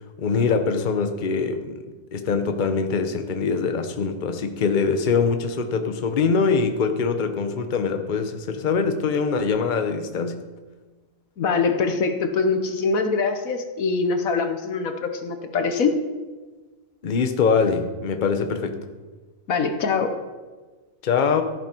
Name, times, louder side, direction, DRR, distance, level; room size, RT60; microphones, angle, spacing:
voice 1, 0.2-1.8 2.1-10.4 17.0-18.8 21.0-21.4, left 5 dB, 40° left, 7 dB, 0.8 m, -23 dB
voice 2, 11.4-16.0 19.5-20.1, left 4 dB, 65° left, 7 dB, 1.3 m, -23 dB
14.5 x 9.0 x 4.5 m, 1.3 s
omnidirectional pair, 1.7 m